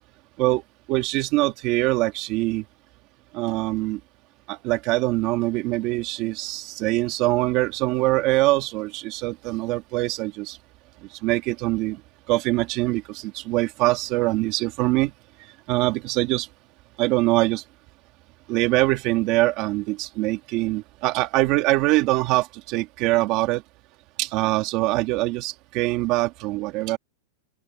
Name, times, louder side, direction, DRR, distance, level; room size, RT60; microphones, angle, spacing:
voice 1, 0.9-2.6 3.3-4.0 4.5-10.6 11.2-12.0 12.3-15.1 15.7-16.5 17.0-17.6 18.5-23.6 24.2-27.0, right 19 dB, 35° right, 2.3 m, -23 dB
open air
supercardioid pair, 165°, 0 cm